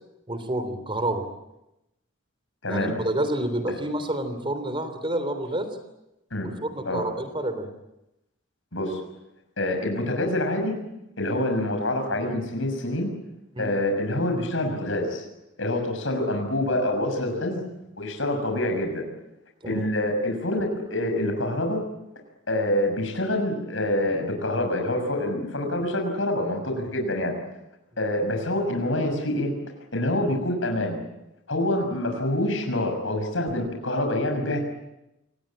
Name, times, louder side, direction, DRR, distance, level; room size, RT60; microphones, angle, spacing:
voice 1, 0.3-1.2 2.7-5.8 6.4-7.7 13.5-13.7 19.6-19.9, right 1 dB, 25° right, 10 dB, 3.4 m, -29 dB
voice 2, 2.6-3.0 3.7-3.8 6.3-6.5 6.8-7.0 8.7-9.0 9.6-10.8 11.2-13.1 13.6-15.2 15.6-17.6 17.9-19.0 19.7-21.8 22.5-27.3 28.0-29.5 29.9-31.0 31.5-34.6, left 1 dB, 75° left, 4 dB, 6.3 m, -26 dB
27.5 x 19.5 x 8.8 m, 0.91 s
head